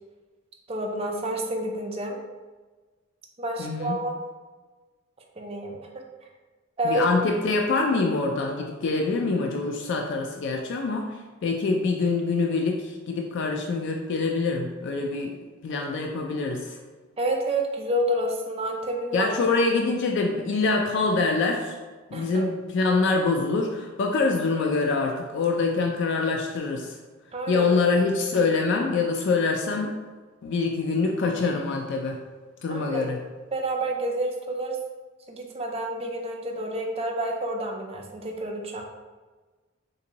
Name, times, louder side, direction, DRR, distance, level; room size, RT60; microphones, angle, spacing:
voice 1, 0.7-2.2 3.4-4.1 5.4-6.0 6.8-7.0 17.2-19.6 22.1-22.4 27.3-27.7 32.7-33.1 33.5-34.8 35.3-38.8, right 1 dB, 30° right, 1 dB, 0.4 m, -29 dB
voice 2, 3.6-4.0 6.8-15.3 15.6-16.8 19.1-21.8 22.1-27.0 27.5-29.9 30.4-32.2 32.6-33.2, left 3 dB, 55° left, 2 dB, 0.3 m, -25 dB
3.9 x 2.6 x 2.8 m, 1.3 s
head